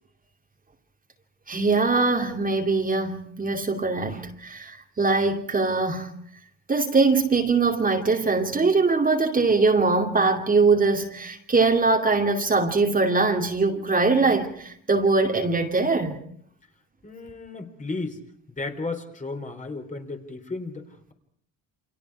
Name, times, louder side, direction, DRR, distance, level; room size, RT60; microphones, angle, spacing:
voice 1, 1.5-6.2 6.7-16.2, right 3 dB, 25° right, 2.7 m, -22 dB
voice 2, 17.0-18.2 18.5-21.1, left 3 dB, 20° left, 3.9 m, -34 dB
29.5 x 26.0 x 4.8 m
cardioid pair, 120°, 34 cm